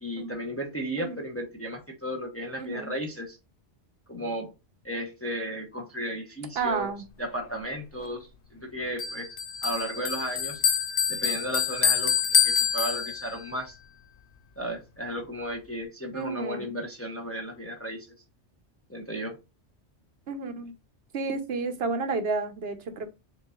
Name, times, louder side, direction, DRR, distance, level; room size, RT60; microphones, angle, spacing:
voice 1, 0.0-3.4 4.1-4.5 4.8-6.9 7.2-9.3 9.6-10.6 11.1-12.1 12.4-13.8 14.6-18.1 18.9-19.4, equal, 15° left, 0.7 m, -34 dB
voice 2, 2.6-2.9 6.6-7.1 16.1-16.7 20.3-20.7 21.1-23.1, right 4 dB, 60° right, 1.0 m, -31 dB
Bell, 9.0-13.5, left 8 dB, 55° left, 0.7 m, -26 dB
6.9 x 2.6 x 2.3 m
omnidirectional pair, 1.2 m